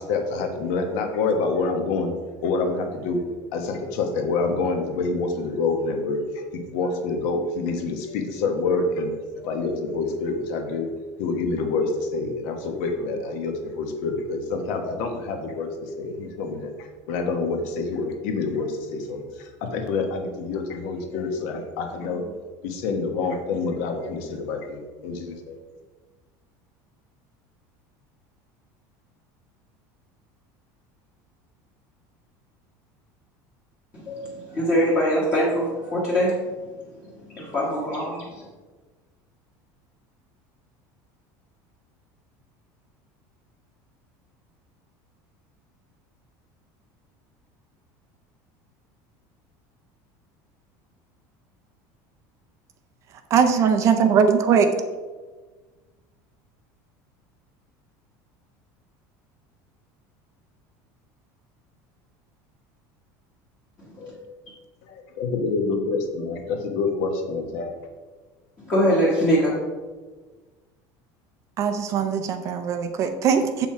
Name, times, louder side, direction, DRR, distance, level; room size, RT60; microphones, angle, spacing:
voice 1, 0.0-2.1 2.4-3.2 3.5-6.2 6.5-10.9 11.2-22.3 22.6-25.6 64.9-67.7, left 3 dB, 60° left, 4 dB, 1.3 m, -27 dB
voice 2, 33.9-36.3 37.3-38.5 64.0-64.1 68.6-69.6, equal, 25° left, -7 dB, 1.4 m, -23 dB
voice 3, 53.3-54.7 71.6-73.7, right 7 dB, 35° right, 7 dB, 0.5 m, -20 dB
7.4 x 5.6 x 4.4 m, 1.3 s
cardioid pair, 175°, 9 cm